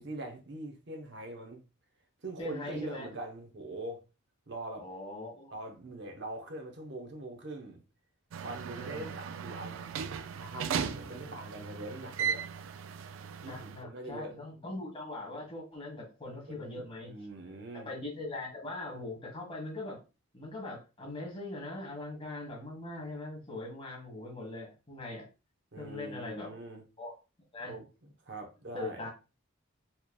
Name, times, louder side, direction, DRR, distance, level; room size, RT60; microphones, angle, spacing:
voice 1, 0.0-1.6 2.2-4.0 4.5-4.9 5.5-7.8 8.4-9.9 10.3-12.5 13.4-14.3 16.5-17.9 25.7-26.8 27.6-27.9 28.3-29.1, right 2 dB, 55° right, 0.9 m, -42 dB
voice 2, 2.4-3.1 4.8-5.5 8.8-9.2 11.0-11.4 13.4-17.1 17.7-20.0 20.3-25.3 25.8-26.6 27.0-27.1 27.5-27.7 28.7-29.1, left 2 dB, 25° left, 1.6 m, -41 dB
sound 1, 8.3-13.8, right 7 dB, 75° right, 0.3 m, -37 dB
4.3 x 3.2 x 2.2 m
head